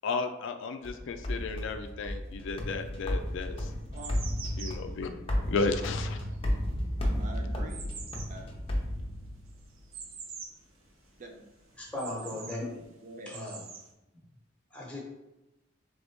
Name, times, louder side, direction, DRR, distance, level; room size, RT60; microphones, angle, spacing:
voice 1, 0.0-3.7 4.6-5.2 5.5-6.2, left 4 dB, 65° left, 7 dB, 0.4 m, -33 dB
sound 1, 0.8-9.6, equal, 30° left, 0.6 m, -33 dB
sound 2, 2.9-3.0 3.5-10.7 11.0-11.1 11.5-12.7 13.1-13.9, right 5 dB, 80° right, 0.6 m, -46 dB
voice 2, 7.0-7.9 8.3-8.5 11.2-11.5 13.0-13.4, right 1 dB, 40° right, 3 dB, 0.5 m, -45 dB
voice 3, 11.8-12.8 13.3-13.6 14.7-15.0, left 1 dB, 5° left, -3 dB, 1.1 m, -37 dB
3.9 x 3.4 x 3.5 m, 0.95 s
head